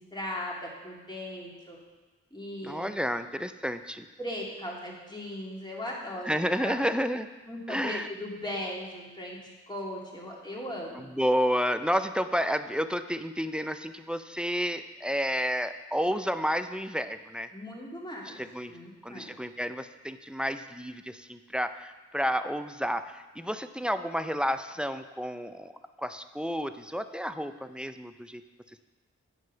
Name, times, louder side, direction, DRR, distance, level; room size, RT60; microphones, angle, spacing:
voice 1, 0.0-1.8 2.3-2.9 4.2-6.8 7.5-11.1 17.5-18.4 18.7-19.3, left 1 dB, 15° left, -4 dB, 2.8 m, -38 dB
voice 2, 2.6-4.1 6.3-7.3 7.7-8.1 11.0-17.5 18.2-18.7 19.0-25.7 26.0-28.4, equal, 5° right, 10 dB, 0.5 m, -31 dB
9.1 x 6.2 x 5.7 m, 1.3 s
cardioid pair, 40°, 29 cm